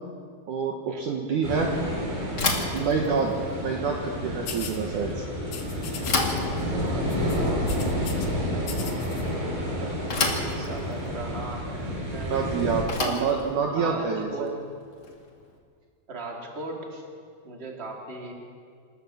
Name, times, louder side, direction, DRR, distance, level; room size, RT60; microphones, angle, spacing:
voice 1, 0.5-1.7 2.6-5.2 12.3-14.5, right 5 dB, 65° right, 1 dB, 2.4 m, -27 dB
sound 1, 1.4-12.8, equal, 85° right, 7.7 m, -30 dB
Bicycle / Thump thud, 2.3-15.4, left 3 dB, 35° left, 2.1 m, -33 dB
sound 2, 4.5-4.8 5.5-6.3 6.6-6.8 7.1-8.3 8.6-9.2, left 7 dB, 75° left, 3.7 m, -39 dB
voice 2, 6.3-8.1 8.8-12.3 13.6-14.6 16.1-16.9 17.4-18.3, right 2 dB, 20° right, 0 dB, 2.4 m, -39 dB
27.5 x 13.5 x 7.0 m, 2.2 s
omnidirectional pair, 4.5 m